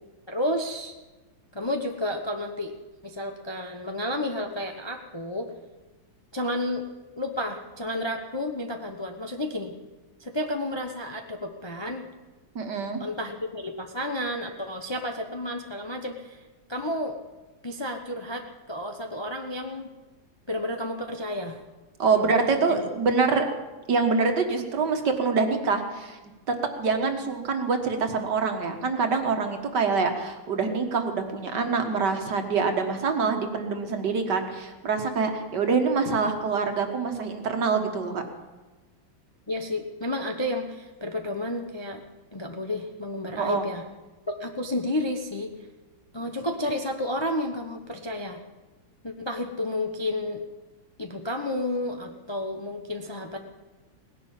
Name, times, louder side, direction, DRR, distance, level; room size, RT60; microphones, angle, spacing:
voice 1, 0.3-0.9 1.5-2.7 3.0-5.5 6.3-6.8 7.2-9.7 10.2-12.1 13.0-17.2 17.6-19.9 20.5-21.6 22.1-22.3 22.7-22.8 39.5-42.0 42.3-43.8 44.4-45.5 46.1-48.4 49.0-50.4 51.0-53.4, left 1 dB, 20° left, 3 dB, 0.7 m, -31 dB
voice 2, 12.6-13.0 22.0-23.4 23.9-26.2 26.5-38.2 43.4-43.6, right 4 dB, 60° right, 5 dB, 2.1 m, -25 dB
18.5 x 11.0 x 7.3 m, 1.2 s
omnidirectional pair, 2.1 m